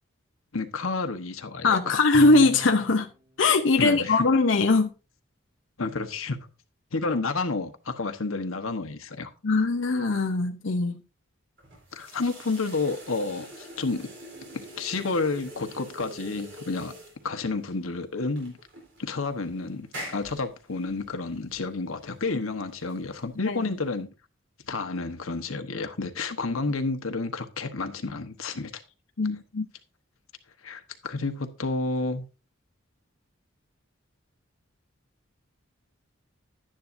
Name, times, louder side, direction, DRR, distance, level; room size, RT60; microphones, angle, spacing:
voice 1, 0.5-2.0 3.8-4.3 5.8-6.4 6.9-9.3 11.9-14.1 14.5-16.9 17.2-18.6 19.0-24.1 24.7-28.7 30.6-32.2, left 3 dB, 85° left, 1.2 m, -30 dB
voice 2, 1.6-3.1 3.4-4.9 9.4-10.9 23.4-23.7 29.2-29.7, left 3 dB, 65° left, 0.7 m, -21 dB
Bowed string instrument, 2.1-3.0, right 2 dB, 30° right, 0.5 m, -36 dB
sound 1, 11.6-24.0, right 1 dB, 65° right, 3.8 m, -46 dB
11.0 x 10.0 x 2.6 m
head